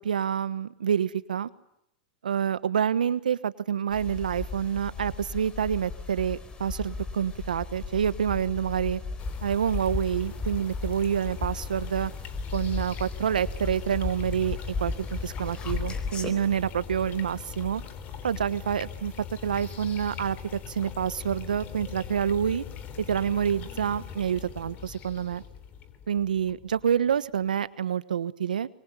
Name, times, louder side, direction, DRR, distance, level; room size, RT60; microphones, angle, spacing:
voice 1, 0.0-1.5 2.2-9.0 9.4-12.1 12.5-17.8 18.2-19.1 19.4-22.6 23.1-25.4 26.1-28.7, right 8 dB, 90° right, 16 dB, 1.3 m, -27 dB
sound 1, 3.9-16.3, left 4 dB, 20° left, 4.1 m, -35 dB
sound 2, 9.2-27.4, left 7 dB, 35° left, 3.8 m, -41 dB
24.5 x 24.5 x 9.9 m, 0.80 s
hypercardioid pair, 115°, 4 cm